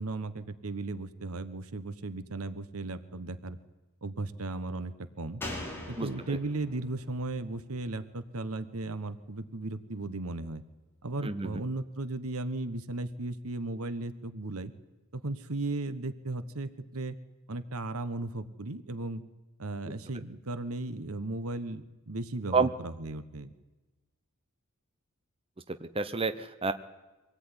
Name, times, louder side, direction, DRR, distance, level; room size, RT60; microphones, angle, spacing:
voice 1, 0.0-3.6 4.0-5.4 5.9-10.6 11.0-14.7 15.1-17.2 17.5-19.2 19.6-23.5, right 2 dB, 85° right, 12 dB, 1.2 m, -36 dB
Slam, 5.4-8.9 9.2-9.3, left 1 dB, 10° left, 4.9 m, -43 dB
voice 2, 6.0-6.4 11.2-11.6 22.5-22.7 25.7-26.7, right 4 dB, 25° right, 10 dB, 0.9 m, -29 dB
24.5 x 18.0 x 9.9 m, 1.2 s
head